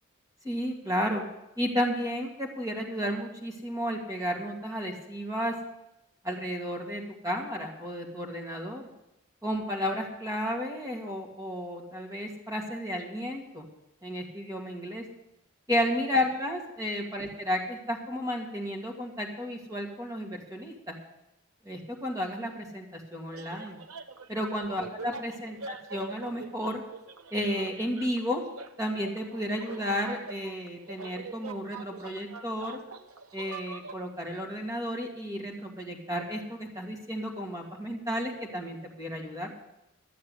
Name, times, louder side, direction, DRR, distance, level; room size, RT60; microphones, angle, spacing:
voice 1, 0.4-1.2 1.6-5.5 6.2-8.9 9.4-13.7 14.0-15.0 15.7-21.0 21.6-23.8 24.3-26.8 27.3-28.4 28.8-32.8 33.3-39.5, equal, 15° right, 1 dB, 2.2 m, -32 dB
sound 1, 23.3-34.0, right 4 dB, 90° right, 0.9 m, -44 dB
12.5 x 7.5 x 9.7 m, 0.89 s
head